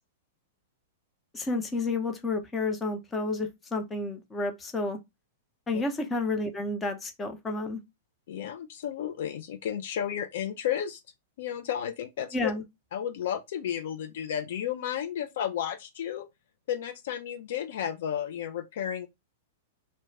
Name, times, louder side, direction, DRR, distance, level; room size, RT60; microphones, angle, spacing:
voice 1, 1.3-5.0 5.7-7.8 12.3-12.6, left 3 dB, 15° left, 0.6 m, -30 dB
voice 2, 8.3-11.0 11.4-12.5 12.9-16.3 16.7-19.1, left 9 dB, 65° left, 0.3 m, -32 dB
2.3 x 2.1 x 3.1 m
hypercardioid pair, 115°, 0 cm